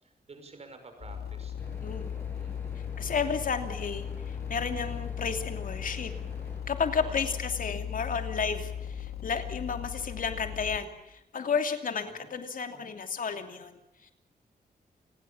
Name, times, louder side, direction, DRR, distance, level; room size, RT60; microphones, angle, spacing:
voice 1, 0.0-1.8 2.1-2.8 7.0-7.5 12.1-12.3 12.7-12.8, right 3 dB, 40° right, 6 dB, 6.0 m, -50 dB
sound 1, 1.0-10.8, left 9 dB, 80° left, 4.0 m, -37 dB
sound 2, 1.6-6.6, left 1 dB, 10° left, 7.4 m, -47 dB
voice 2, 1.8-2.1 3.0-6.1 6.7-14.1, left 5 dB, 60° left, 7 dB, 2.9 m, -32 dB
29.0 x 20.0 x 7.3 m, 0.87 s
wide cardioid pair, 160°, 16 cm